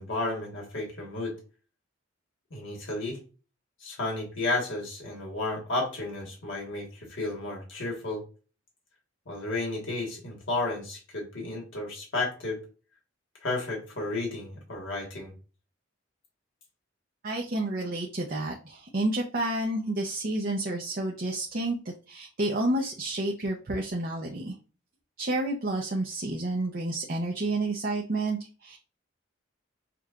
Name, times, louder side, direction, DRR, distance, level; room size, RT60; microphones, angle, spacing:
voice 1, 0.0-1.3 2.5-3.2 3.8-8.2 9.3-12.6 13.4-15.3, left 2 dB, 70° left, -1 dB, 1.4 m, -32 dB
voice 2, 17.2-24.6 25.2-28.8, right 2 dB, 45° right, 0 dB, 0.6 m, -30 dB
6.0 x 2.3 x 2.4 m, 0.34 s
head